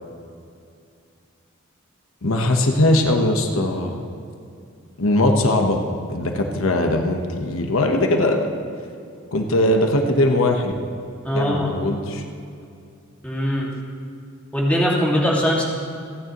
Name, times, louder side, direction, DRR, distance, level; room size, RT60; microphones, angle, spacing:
voice 1, 2.2-4.0 5.0-5.8 6.1-8.5 9.3-10.7 11.3-12.2, left 1 dB, 80° left, 3 dB, 1.1 m, -20 dB
voice 2, 11.2-11.7 13.2-13.7 14.5-15.6, equal, 5° left, -4 dB, 2.2 m, -21 dB
28.0 x 9.7 x 3.1 m, 2.4 s
head